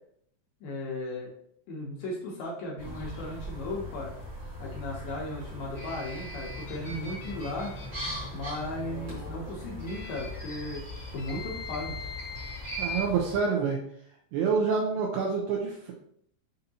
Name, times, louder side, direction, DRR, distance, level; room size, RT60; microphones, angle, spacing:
voice 1, 0.6-1.3 1.7-4.1 4.6-7.7 8.3-10.8 11.1-12.0 14.6-14.7, left 1 dB, 80° left, -3 dB, 2.0 m, -36 dB
sound 1, 2.8-13.4, left 1 dB, 45° right, 1.1 m, -41 dB
sound 2, 5.7-8.2 9.8-13.0, left 1 dB, 65° left, 1.2 m, -41 dB
voice 2, 12.8-13.8 14.3-15.9, right 5 dB, 80° right, -1 dB, 2.4 m, -27 dB
6.7 x 2.6 x 2.8 m, 0.67 s
omnidirectional pair, 5.0 m